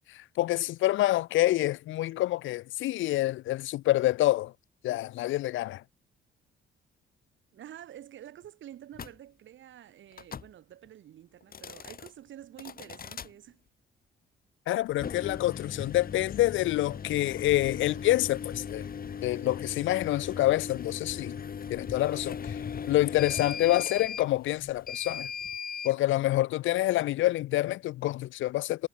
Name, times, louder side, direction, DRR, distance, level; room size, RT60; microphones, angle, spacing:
voice 1, 0.1-4.5 4.8-5.8 14.7-18.8 19.2-21.4 21.7-22.6 22.9-25.3 25.8-28.9, left 16 dB, 80° left, 0.6 m, -27 dB
voice 2, 7.5-13.6, right 11 dB, 70° right, 7.5 m, -48 dB
sound 1, 8.9-9.2 10.1-10.5 11.4-12.1 12.6-13.3 14.9-25.9, left 7 dB, 45° left, 4.2 m, -38 dB
cardioid pair, 90°, 20 cm